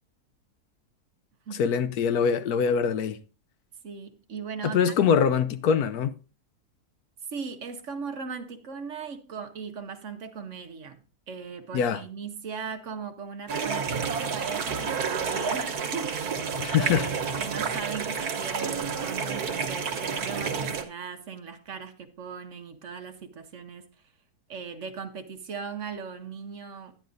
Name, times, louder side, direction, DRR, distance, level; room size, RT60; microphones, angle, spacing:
voice 1, 1.6-3.2 4.6-6.1 11.7-12.0 16.6-17.1, left 7 dB, 75° left, 1.2 m, -23 dB
voice 2, 3.8-4.9 7.3-11.0 11.3-23.8 24.5-27.0, right 6 dB, 55° right, 1.1 m, -38 dB
sound 1, 13.5-20.8, right 5 dB, 75° right, 1.5 m, -30 dB
11.0 x 10.0 x 2.6 m
omnidirectional pair, 1.7 m